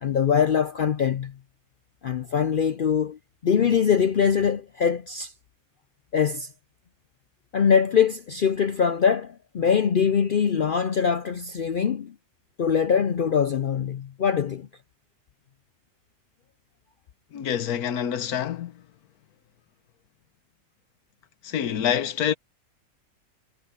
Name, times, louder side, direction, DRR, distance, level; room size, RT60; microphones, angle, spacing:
voice 1, 0.0-1.3 2.0-5.3 6.1-6.5 7.5-12.1 12.6-14.7, left 7 dB, 65° left, 0.5 m, -23 dB
voice 2, 17.3-18.8 21.4-22.3, left 9 dB, 85° left, 1.4 m, -26 dB
omnidirectional pair, 1.5 m